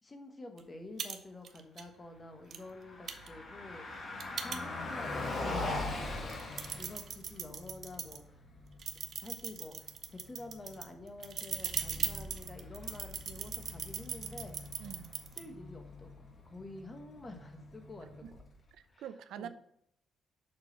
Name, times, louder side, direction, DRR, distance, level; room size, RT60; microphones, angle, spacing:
voice 1, 0.0-8.4 9.2-14.5 15.3-16.2 16.4-18.4 18.9-19.1 19.4-19.5, left 2 dB, 25° left, 5 dB, 1.5 m, -49 dB
sound 1, 0.6-0.7 1.0-1.2 1.4-1.8 2.5-2.6 3.1-5.1 5.6-5.7 6.2-8.2 8.8-15.4, right 7 dB, 55° right, 0.8 m, -39 dB
Car passing by, 2.6-18.7, left 2 dB, 45° left, 1.9 m, -43 dB
voice 2, 14.8-15.1 18.2-18.3 18.7-19.5, right 10 dB, 80° right, 12 dB, 0.5 m, -45 dB
6.9 x 4.0 x 5.6 m, 0.71 s
cardioid pair, 90°, 0 cm